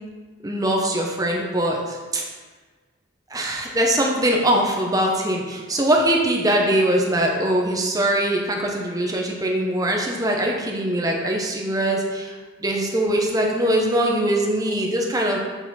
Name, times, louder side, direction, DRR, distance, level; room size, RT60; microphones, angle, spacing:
voice 1, 0.4-2.2 3.3-12.3 12.6-15.4, right 1 dB, 20° right, -1 dB, 0.8 m, -22 dB
7.0 x 4.1 x 4.2 m, 1.4 s
head